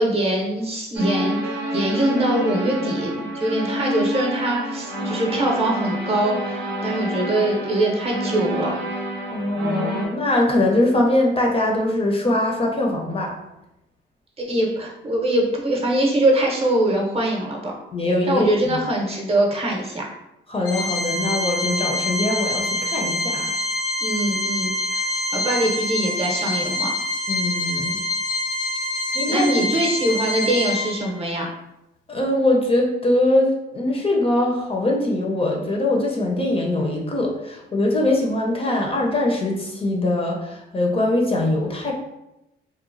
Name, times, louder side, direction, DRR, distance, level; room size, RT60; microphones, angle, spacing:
voice 1, 0.0-8.7 14.4-17.7 18.3-20.0 24.0-26.9 29.3-31.5, right 1 dB, 30° right, -2 dB, 0.7 m, -23 dB
sound 1, 0.9-10.1, right 1 dB, 70° right, 0.6 m, -28 dB
voice 2, 9.3-13.3 17.9-18.8 20.5-23.6 27.3-28.0 29.1-29.7 32.1-41.9, left 1 dB, 30° left, 0 dB, 0.5 m, -22 dB
Organ, 20.7-31.3, left 1 dB, 90° left, 0.4 m, -26 dB
2.9 x 2.1 x 2.5 m, 0.90 s
cardioid pair, 90°, 20 cm